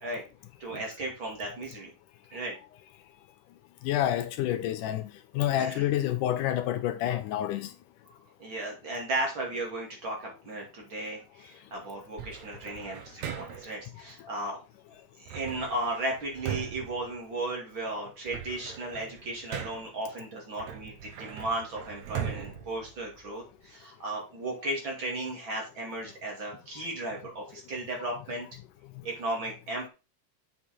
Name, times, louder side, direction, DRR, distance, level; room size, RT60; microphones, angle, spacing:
voice 1, 0.6-1.9 2.3-2.6 5.6-5.9 8.4-14.6 15.2-28.5 29.0-29.9, right 2 dB, 40° right, 2.9 m, -35 dB
voice 2, 3.8-5.0 5.4-7.7, left 12 dB, 80° left, 2.2 m, -28 dB
sound 1, 12.2-13.8 15.3-17.7 18.1-20.0 20.6-23.6, right 8 dB, 65° right, 2.3 m, -40 dB
7.5 x 5.6 x 4.3 m
omnidirectional pair, 3.8 m